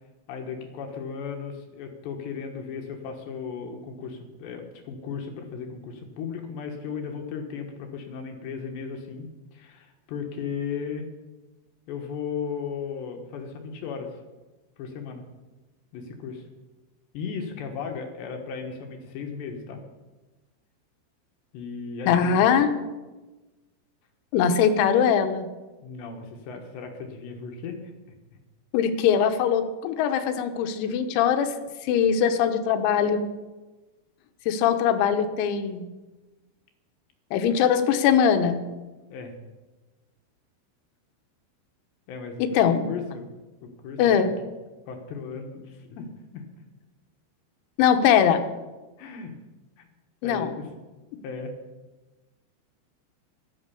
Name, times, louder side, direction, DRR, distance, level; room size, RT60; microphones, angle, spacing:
voice 1, 0.3-11.1 11.9-14.2 14.8-15.2 15.9-16.5 17.1-19.8 21.5-22.7 25.8-27.8 39.1-39.3 42.1-42.4 42.8-43.3 43.6-44.2 44.9-46.1 46.3-46.4 49.0-49.3 49.8-49.9 50.2-50.7 51.2-51.5, left 6 dB, 65° left, 3 dB, 3.2 m, -36 dB
voice 2, 22.1-22.7 24.3-25.5 28.7-31.5 31.8-33.2 34.5-35.8 37.3-38.6 42.4-42.8 44.0-44.3 47.8-48.4 50.2-50.5, left 8 dB, 90° left, 8 dB, 3.9 m, -21 dB
15.0 x 12.0 x 6.9 m, 1.2 s
omnidirectional pair, 6.0 m